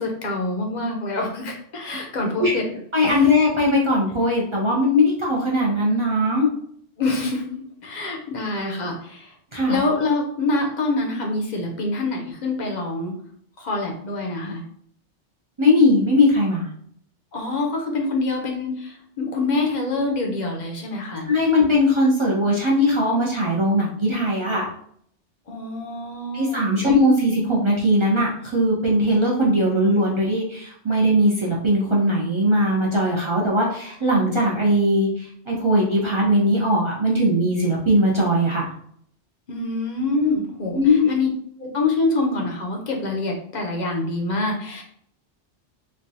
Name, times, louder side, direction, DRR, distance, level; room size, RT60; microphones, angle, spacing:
voice 1, 0.0-2.6 3.0-3.3 7.0-9.3 9.7-13.1 13.6-14.6 17.3-21.3 25.5-27.0 39.5-41.3 41.6-44.8, left 2 dB, 50° left, 1 dB, 0.6 m, -26 dB
voice 2, 2.9-6.5 9.5-9.8 15.6-16.7 21.3-24.7 26.3-38.7 40.7-41.1, left 1 dB, 40° right, -4 dB, 0.4 m, -19 dB
3.1 x 2.3 x 2.6 m, 0.64 s
omnidirectional pair, 1.2 m